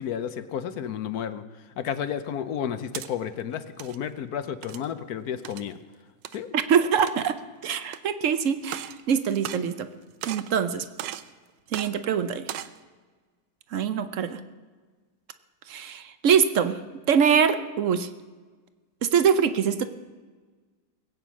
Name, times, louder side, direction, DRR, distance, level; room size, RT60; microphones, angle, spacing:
voice 1, 0.0-1.4 1.8-5.8 6.3-6.5, left 8 dB, 65° left, 12 dB, 1.1 m, -32 dB
sound 1, 2.6-3.1 3.6-4.0 4.6-4.9 5.4-5.7 6.2-6.4 7.0-7.4 7.9-8.0 8.6-9.0 9.3-9.9 10.2-10.5 11.0-11.3 11.7-11.9 12.4-12.8, right 12 dB, 75° right, 1.3 m, -36 dB
voice 2, 6.5-7.4 7.6-9.9 10.3-10.9 11.7-12.6 13.7-14.4 15.7-16.8 17.1-18.1 19.0-19.9, right 7 dB, 55° right, 11 dB, 0.9 m, -23 dB
21.0 x 8.8 x 6.2 m, 1.4 s
omnidirectional pair, 2.0 m